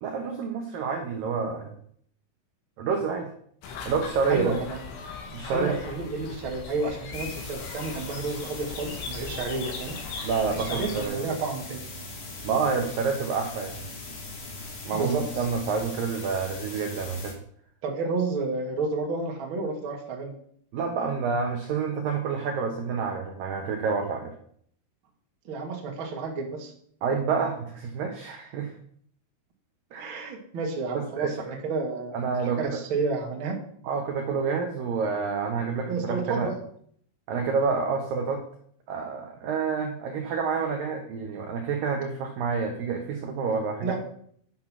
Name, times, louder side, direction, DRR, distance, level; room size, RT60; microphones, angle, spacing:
voice 1, 0.0-1.7 2.8-3.3 3.9-4.5 5.3-5.7 10.2-11.4 12.4-13.8 14.8-17.3 20.7-24.3 27.0-28.7 29.9-30.3 30.9-31.3 32.1-32.8 33.8-36.5 37.3-38.4 38.9-44.0, right 5 dB, 75° right, 2 dB, 2.1 m, -28 dB
sound 1, 3.6-11.1, left 4 dB, 70° left, 3.9 m, -38 dB
voice 2, 4.3-4.8 5.5-10.0 10.5-11.8 14.9-15.3 17.8-20.3 25.4-26.7 30.0-32.2 32.6-33.6 35.9-36.5 43.8-44.0, right 3 dB, 50° right, 0 dB, 1.5 m, -31 dB
sound 2, 7.1-17.3, left 3 dB, 50° left, 3.2 m, -40 dB
10.5 x 5.8 x 6.1 m, 0.62 s
omnidirectional pair, 5.5 m